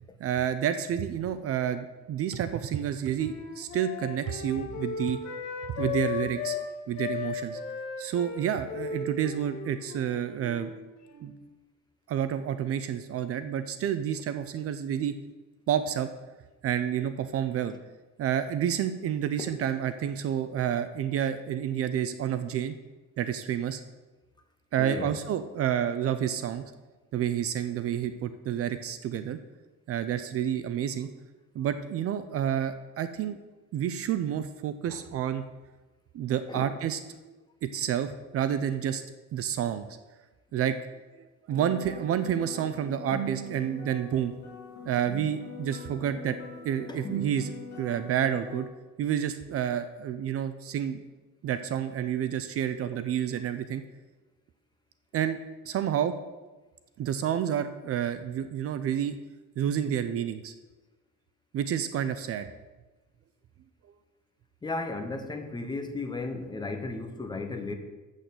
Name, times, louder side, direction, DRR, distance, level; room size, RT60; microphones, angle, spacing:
voice 1, 0.2-5.2 5.7-6.6 6.9-7.6 8.0-10.7 11.2-11.3 12.1-15.1 15.7-16.1 16.6-17.7 18.2-22.7 23.2-23.8 24.7-26.6 27.1-29.4 29.9-31.1 31.5-33.4 33.7-35.4 36.1-37.0 37.3-37.4 37.6-39.0 39.3-39.9 40.5-40.8 41.2-44.3 44.9-46.4 46.6-47.5 47.8-48.7 49.0-51.0 51.4-53.8 55.1-55.4 55.6-56.2 57.0-59.2 59.6-60.5 61.5-62.5, right 9 dB, 50° right, 11 dB, 0.5 m, -29 dB
Wind instrument woodwind instrument, 2.6-6.6 6.9-11.4, left 7 dB, 60° left, 1.6 m, -36 dB
voice 2, 24.8-25.2 34.9-35.0 36.5-36.7 46.9-47.0 64.6-67.7, left 3 dB, 15° left, 6 dB, 0.7 m, -35 dB
sound 1, 41.5-48.7, right 2 dB, 35° left, 3.4 m, -40 dB
7.7 x 6.4 x 6.8 m, 1.2 s
cardioid pair, 175°, 31 cm